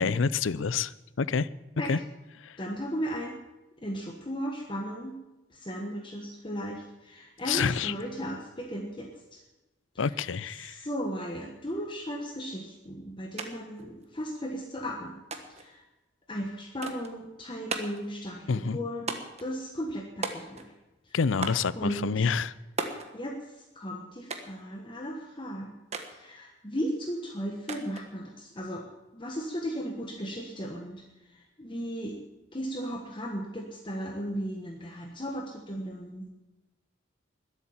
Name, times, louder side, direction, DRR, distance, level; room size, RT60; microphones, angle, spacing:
voice 1, 0.0-1.5 1.9-2.0 2.4-2.6 7.4-7.9 10.0-10.9 18.5-18.8 21.1-22.5, left 5 dB, 90° left, 19 dB, 0.5 m, -28 dB
voice 2, 2.6-3.3 3.8-5.2 5.5-9.4 10.6-15.2 15.5-15.8 16.3-20.6 21.1-21.2 21.7-22.3 23.1-23.4 23.7-25.7 26.1-28.8 29.1-31.0 31.6-32.2 32.5-36.3, equal, 25° left, 1 dB, 1.4 m, -36 dB
sound 1, 13.4-13.5 13.8-14.5 15.3-15.7 16.8-17.1 17.7-18.1 19.1-19.5 20.2-20.8 21.4-21.7 22.8-23.1 24.3-24.6 25.9-26.1 27.7-28.1, right 3 dB, 35° right, 1.4 m, -36 dB
21.0 x 8.3 x 7.4 m, 1.0 s
head